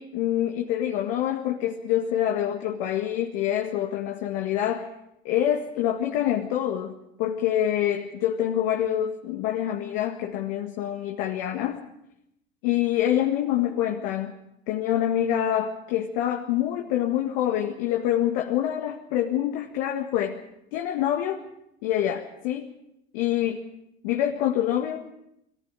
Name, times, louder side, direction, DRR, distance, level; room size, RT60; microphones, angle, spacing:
voice 1, 0.0-4.9 5.2-11.8 12.6-14.4 14.7-20.4 20.7-21.4 21.8-22.7 23.1-23.7 24.0-25.1, left 11 dB, 60° left, 3 dB, 1.9 m, -26 dB
22.5 x 14.5 x 9.0 m, 0.81 s
hypercardioid pair, 85°, 31 cm